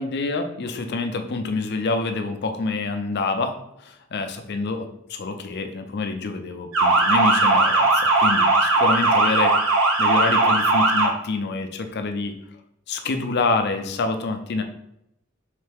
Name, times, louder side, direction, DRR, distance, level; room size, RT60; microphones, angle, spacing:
voice 1, 0.0-9.6 10.0-12.4 12.9-14.6, left 3 dB, 55° left, 7 dB, 0.5 m, -27 dB
Motor vehicle (road) / Siren, 6.7-11.1, right 2 dB, 75° right, 0.8 m, -18 dB
3.5 x 3.2 x 3.4 m, 0.79 s
head